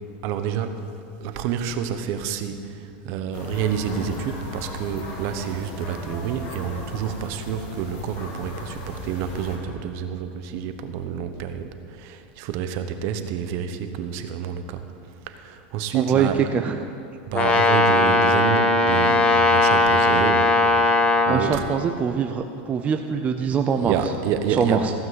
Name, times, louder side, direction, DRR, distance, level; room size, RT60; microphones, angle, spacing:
voice 1, 0.2-0.8 1.2-14.8 15.3-16.4 17.3-20.6 21.3-21.6 23.8-24.9, right 8 dB, 50° right, 8 dB, 1.0 m, -28 dB
sound 1, 3.3-9.6, left 1 dB, 50° left, 2.7 m, -37 dB
voice 2, 15.9-16.8 21.3-23.9 24.5-24.9, right 7 dB, 25° right, 5 dB, 0.5 m, -23 dB
Brass instrument, 17.3-21.4, left 2 dB, 20° left, 1.4 m, -18 dB
15.5 x 5.9 x 7.6 m, 2.5 s
supercardioid pair, 135°, 6 cm